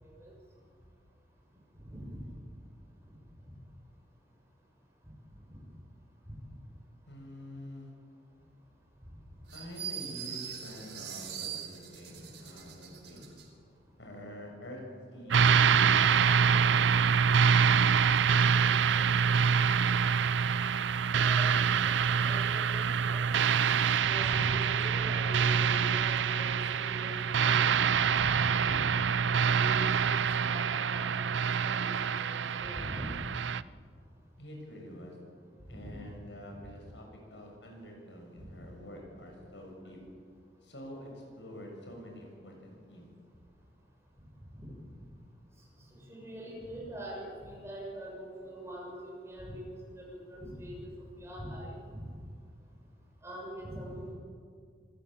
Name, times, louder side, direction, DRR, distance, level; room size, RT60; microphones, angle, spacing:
voice 1, 1.8-2.3 6.3-6.4 21.1-21.6 22.2-23.3 23.7-28.9 29.4-30.2 30.4-31.1 31.6-33.1 35.8-36.0 38.4-38.6 44.5-44.7 45.9-50.9 51.2-52.1 53.2-54.1, equal, 15° right, -2 dB, 6.6 m, -43 dB
voice 2, 7.1-7.9 9.5-13.3 14.0-14.8 15.1-15.4 15.7-17.2 34.4-35.2 35.7-40.0 40.6-43.1, equal, 80° left, 1 dB, 7.3 m, -47 dB
sound 1, 9.5-13.5, right 8 dB, 70° right, 4.4 m, -42 dB
sound 2, 15.3-33.6, right 6 dB, 90° right, 0.5 m, -26 dB
27.0 x 16.0 x 8.9 m, 2.1 s
head